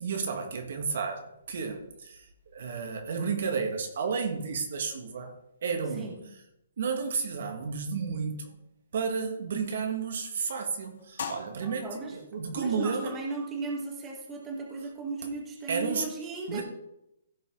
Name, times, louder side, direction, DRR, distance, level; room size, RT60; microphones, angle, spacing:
voice 1, 0.0-2.3 2.5-5.3 5.6-6.2 6.8-8.6 8.9-13.2 15.7-16.1 16.5-16.6, right 5 dB, 60° right, 5 dB, 1.8 m, -32 dB
sound 1, 9.6-15.1, left 6 dB, 65° left, 1.5 m, -46 dB
voice 2, 11.6-12.2 12.5-16.6, right 3 dB, 15° right, 1 dB, 1.7 m, -36 dB
15.5 x 5.6 x 3.9 m, 0.83 s
hypercardioid pair, 155°, 0 cm